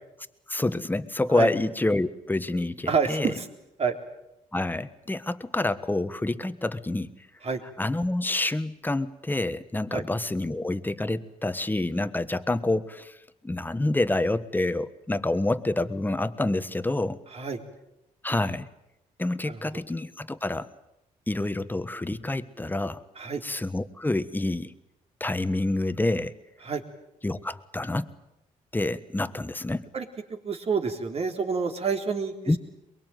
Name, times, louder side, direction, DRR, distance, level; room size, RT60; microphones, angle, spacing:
voice 1, 0.5-3.3 4.5-7.1 7.8-13.2 13.4-17.2 18.2-18.7 19.2-20.7 21.3-23.0 23.4-24.7 25.2-26.3 27.2-28.1 28.7-29.9 32.5-32.6, left 2 dB, 15° left, 12 dB, 1.4 m, -27 dB
voice 2, 2.9-3.5 3.8-3.9 7.4-7.6 9.9-10.0 17.3-17.6 19.4-19.6 23.2-23.4 26.6-26.8 29.9-32.6, right 5 dB, 45° right, 4 dB, 3.6 m, -28 dB
23.0 x 22.0 x 9.3 m, 0.88 s
cardioid pair, 80°, 14 cm